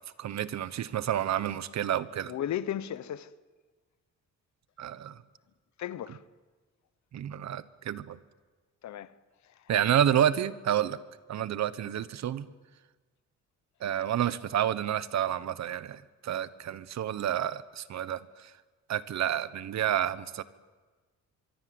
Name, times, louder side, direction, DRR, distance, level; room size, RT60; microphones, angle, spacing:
voice 1, 0.2-2.3 4.8-5.2 7.1-8.2 9.7-11.0 11.3-12.5 13.8-18.5 18.9-20.4, right 10 dB, 65° right, 1.1 m, -29 dB
voice 2, 2.3-3.3 5.8-6.2 8.8-9.1 9.4-9.7, left 10 dB, 70° left, 1.1 m, -35 dB
25.0 x 24.0 x 7.9 m
cardioid pair, 120°, 30 cm